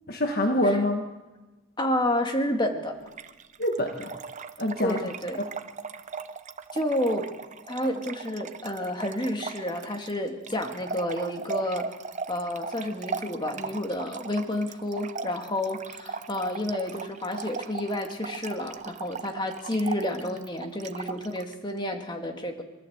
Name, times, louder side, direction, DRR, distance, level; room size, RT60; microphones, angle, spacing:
voice 1, 0.1-1.1 3.6-4.1 4.6-5.0 5.4-5.5, left 1 dB, 45° left, 4 dB, 1.5 m, -25 dB
voice 2, 1.8-3.0 4.8-5.5 6.7-7.3 7.7-11.9 12.3-22.6, left 1 dB, 20° left, 4 dB, 2.1 m, -30 dB
Trickle dribble / Fill (with liquid), 3.1-21.5, right 4 dB, 35° right, 0.7 m, -38 dB
24.0 x 14.0 x 8.1 m, 1.2 s
head